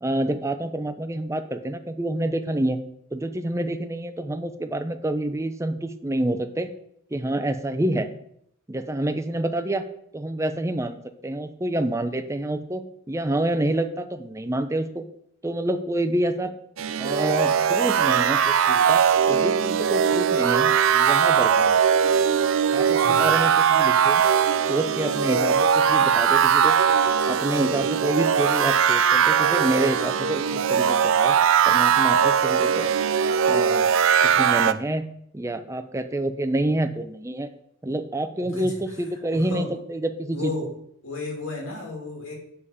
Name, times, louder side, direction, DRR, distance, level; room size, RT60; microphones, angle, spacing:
voice 1, 0.0-2.8 3.1-6.7 7.1-8.1 8.7-9.8 10.1-15.1 15.4-16.5 17.0-19.0 19.3-21.8 22.7-24.2 24.7-26.7 27.3-31.4 31.7-32.9 33.5-33.9 34.2-35.0 35.3-37.5 37.8-40.5, right 1 dB, 15° right, 9 dB, 0.5 m, -27 dB
sound 1, 16.8-34.7, right 7 dB, 70° right, 0.4 m, -20 dB
voice 2, 39.3-39.7 40.3-40.7 41.0-42.3, left 3 dB, 75° left, -1 dB, 2.7 m, -33 dB
8.2 x 5.5 x 4.9 m, 0.72 s
head